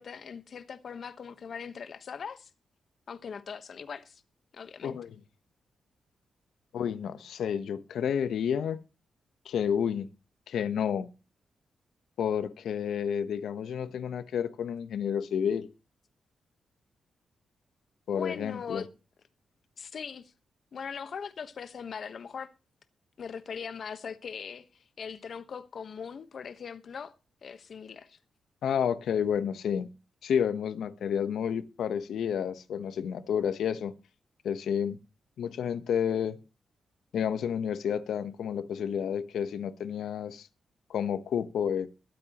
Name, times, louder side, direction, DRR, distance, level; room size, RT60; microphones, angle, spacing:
voice 1, 0.0-2.5 3.1-4.2 4.5-5.0 18.1-18.9 19.8-20.3 20.7-22.5 23.2-27.1 27.4-28.2, left 6 dB, 55° left, 1.2 m, -40 dB
voice 2, 4.8-5.2 6.7-8.8 9.4-10.1 10.5-11.1 12.2-15.7 18.1-18.8 28.6-29.9 30.2-33.9 34.4-35.0 35.4-36.4 37.1-40.5 40.9-41.9, left 8 dB, 85° left, 1.0 m, -30 dB
22.0 x 8.8 x 3.0 m
cardioid pair, 115°, 0 cm